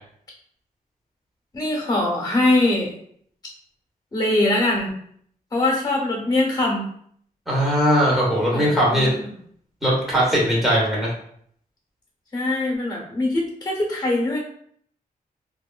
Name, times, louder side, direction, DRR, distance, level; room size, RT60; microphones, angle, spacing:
voice 1, 1.5-3.0 4.1-4.9 5.5-6.9 8.5-8.7 8.9-9.3 12.3-14.4, left 2 dB, 25° left, -2 dB, 1.0 m, -22 dB
voice 2, 7.5-9.2 9.8-11.1, equal, ahead, -6 dB, 1.0 m, -19 dB
2.9 x 2.4 x 2.2 m, 0.64 s
wide cardioid pair, 130°, 15 cm